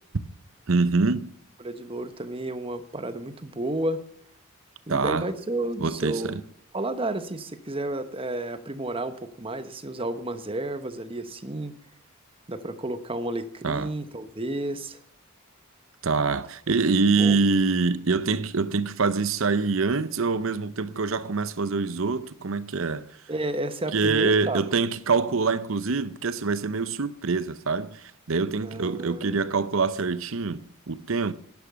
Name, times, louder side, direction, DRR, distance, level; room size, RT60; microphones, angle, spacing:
voice 1, 0.7-1.3 4.9-5.3 5.8-6.4 13.6-13.9 16.0-23.1 23.9-31.3, right 4 dB, 65° right, 0.8 m, -25 dB
voice 2, 1.6-4.0 4.9-6.4 6.7-11.7 12.5-15.0 17.2-17.4 23.3-24.6 28.6-29.3, right 1 dB, 25° right, 1.0 m, -31 dB
11.5 x 10.5 x 6.9 m
head